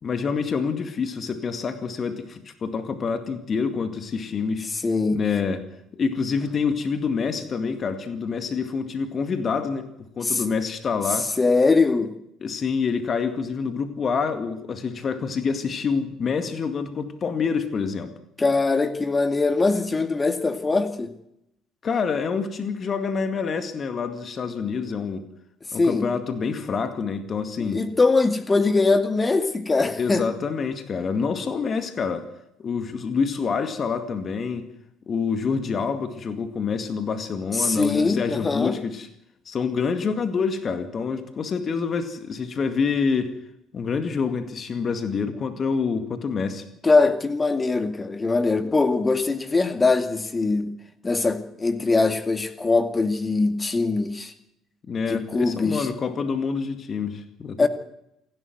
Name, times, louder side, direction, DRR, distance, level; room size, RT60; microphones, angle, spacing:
voice 1, 0.0-4.7 5.1-5.6 5.9-9.9 10.2-11.3 12.4-18.1 21.8-25.2 25.7-27.8 30.0-32.3 32.6-34.7 35.1-39.1 39.5-43.3 43.7-46.6 54.9-57.7, left 5 dB, 40° left, 8 dB, 2.1 m, -27 dB
voice 2, 4.7-5.4 10.2-10.4 11.4-12.1 18.4-21.1 25.8-26.1 27.6-30.3 37.5-38.8 46.8-50.7 51.0-54.3 55.1-55.9 57.6-57.7, left 3 dB, 25° left, 8 dB, 2.2 m, -22 dB
28.0 x 12.5 x 7.9 m, 0.80 s
figure-of-eight pair, 55°, 0 cm